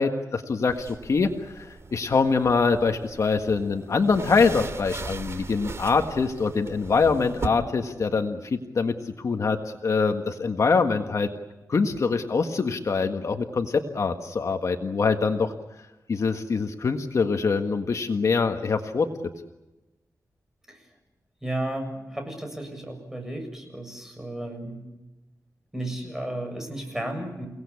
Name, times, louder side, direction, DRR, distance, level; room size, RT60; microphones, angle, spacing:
voice 1, 0.0-11.3 11.7-15.5 16.1-19.1, left 4 dB, 55° left, 5 dB, 1.6 m, -24 dB
sound 1, 0.7-7.5, right 3 dB, 45° right, 2.5 m, -39 dB
voice 2, 21.4-24.9 25.7-27.5, right 1 dB, 5° right, 4 dB, 7.4 m, -33 dB
29.5 x 18.5 x 8.5 m, 1.0 s
wide cardioid pair, 110°, 6 cm